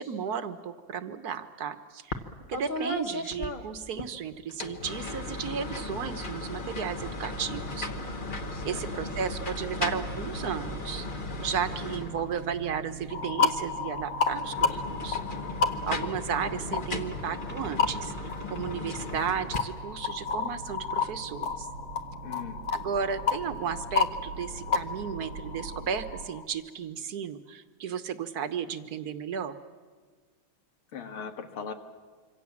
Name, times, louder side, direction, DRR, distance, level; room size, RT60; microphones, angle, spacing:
voice 1, 0.0-2.2 2.5-7.9 8.6-11.1 11.4-15.2 15.9-21.7 22.7-29.6, right 7 dB, 55° right, 10 dB, 1.5 m, -34 dB
sound 1, 2.1-2.3 2.5-4.1 4.5-12.5 14.3-19.6, left 2 dB, 30° left, 1.2 m, -36 dB
sound 2, 7.0-26.3, right 4 dB, 85° right, 2.1 m, -44 dB
voice 2, 8.5-8.9 22.2-22.7 30.9-31.7, left 6 dB, 85° left, 6 dB, 2.5 m, -39 dB
sound 3, 13.1-26.4, left 5 dB, 65° left, 1.9 m, -32 dB
26.5 x 25.0 x 7.3 m, 1.5 s
omnidirectional pair, 2.3 m